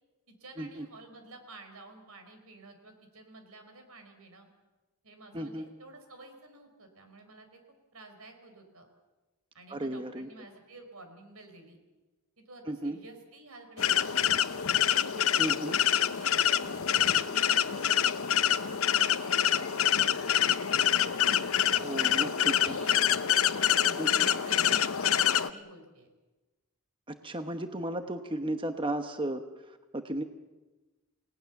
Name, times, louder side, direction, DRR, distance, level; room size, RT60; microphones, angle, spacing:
voice 1, 0.3-4.5 5.0-7.6 7.9-8.9 9.5-11.8 12.4-14.4 15.0-20.3 21.6-23.1 23.8-26.1, right 2 dB, 85° right, 6 dB, 4.7 m, -51 dB
voice 2, 5.3-5.7 9.7-10.3 12.7-13.0 15.4-15.8 21.8-22.5 24.0-24.3 27.1-30.2, right 1 dB, 25° right, 7 dB, 1.0 m, -34 dB
sound 1, 13.8-25.5, left 10 dB, 75° left, 0.8 m, -26 dB
28.5 x 18.5 x 7.1 m, 1.2 s
head